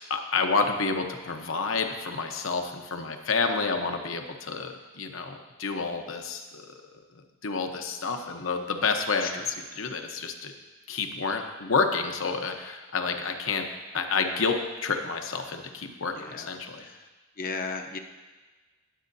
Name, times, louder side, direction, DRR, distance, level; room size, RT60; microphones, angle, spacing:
voice 1, 0.1-10.5 10.9-13.7 13.9-16.9, left 4 dB, 75° left, 5 dB, 0.9 m, -29 dB
voice 2, 16.2-16.5 16.8-17.0 17.4-18.0, left 4 dB, 45° left, 5 dB, 0.8 m, -35 dB
20.5 x 7.5 x 2.7 m, 1.3 s
head